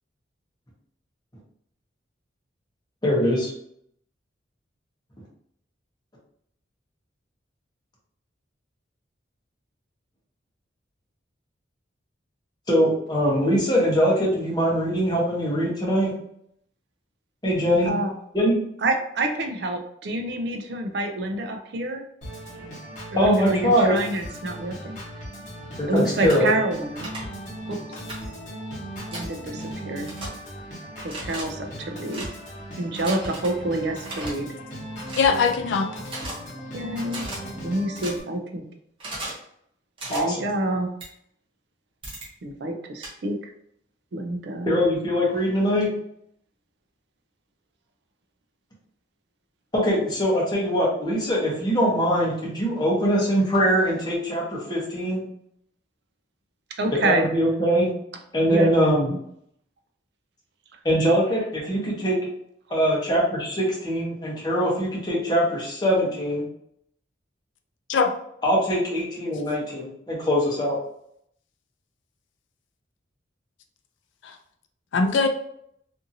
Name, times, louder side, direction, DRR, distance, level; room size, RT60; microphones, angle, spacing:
voice 1, 3.0-3.5 12.7-16.1 17.4-17.9 18.3-18.6 23.1-23.9 25.8-26.5 40.1-40.4 44.7-45.9 49.7-55.2 57.0-57.9 58.3-59.1 60.8-62.2 62.7-66.4 68.4-70.8, equal, 20° left, 0.8 m, -22 dB
voice 2, 18.8-22.0 23.1-25.0 25.9-27.1 27.7-27.8 29.1-30.1 31.0-32.3 32.8-34.5 36.7-37.3 37.6-38.6 40.1-40.9 42.4-43.5 44.1-44.8 56.8-57.3 58.5-58.7 59.1-59.2 60.7-60.8, right 2 dB, 60° right, 0.4 m, -28 dB
Organ, 22.2-38.2, equal, 40° left, 1.1 m, -37 dB
sound 1, 26.2-26.4 27.0-27.2 28.1-28.2 29.1-29.3 30.0-30.3 31.0-31.4 32.1-32.3 33.0-33.5 34.0-34.3 35.1-35.3 36.1-36.3 37.1-37.4 38.0-38.1 39.0-39.4 40.0-40.2 41.0-41.1 42.0-42.3 43.0-43.1, right 2 dB, 25° right, 0.8 m, -35 dB
voice 3, 35.2-35.9 67.9-68.1 74.2-74.4 74.9-75.3, left 5 dB, 75° left, 0.3 m, -21 dB
2.7 x 2.6 x 2.6 m
head